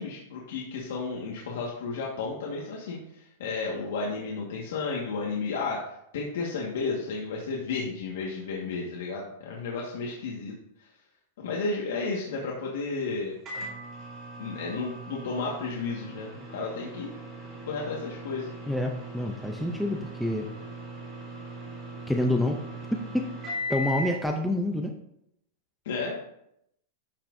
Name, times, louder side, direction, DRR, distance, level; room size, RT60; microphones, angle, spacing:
voice 1, 0.0-10.5 10.8-10.9 11.4-13.4 14.4-17.1 17.7-18.5 25.8-26.2, left 4 dB, 70° left, -3 dB, 1.5 m, -33 dB
Microwave oven, 13.5-24.2, equal, 20° right, 2.9 m, -39 dB
voice 2, 18.7-20.5 22.1-22.6 22.9-23.3 23.7-24.9, left 1 dB, ahead, 2 dB, 0.5 m, -27 dB
12.0 x 5.8 x 2.6 m, 0.77 s
supercardioid pair, 170°, 0 cm